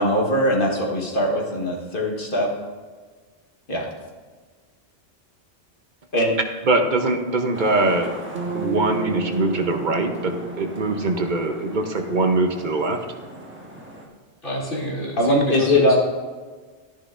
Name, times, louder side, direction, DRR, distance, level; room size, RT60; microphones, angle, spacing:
voice 1, 0.0-2.5 3.7-3.9 6.1-6.3 15.2-15.9, left 1 dB, 50° left, 0 dB, 1.5 m, -20 dB
voice 2, 6.7-8.1 8.5-13.0, right 2 dB, 45° right, 5 dB, 0.9 m, -22 dB
sound 1, 7.5-14.1, right 1 dB, 10° right, 1.3 m, -39 dB
Bass guitar, 8.3-12.7, right 2 dB, 75° right, 1.1 m, -33 dB
voice 3, 14.4-16.0, right 1 dB, 80° left, -5 dB, 2.7 m, -28 dB
12.0 x 10.5 x 2.5 m, 1.4 s
omnidirectional pair, 1.2 m